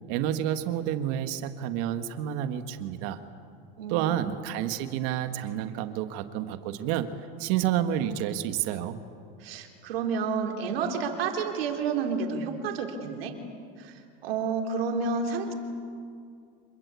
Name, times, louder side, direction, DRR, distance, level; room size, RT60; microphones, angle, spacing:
voice 1, 0.1-3.2 3.9-7.1 7.4-9.0, right 11 dB, 60° right, 9 dB, 1.7 m, -29 dB
voice 2, 3.8-4.2 9.4-13.3 13.8-13.9 14.2-15.5, right 5 dB, 90° right, 3 dB, 3.7 m, -30 dB
26.5 x 22.5 x 8.4 m, 2.3 s
supercardioid pair, 135°, 29 cm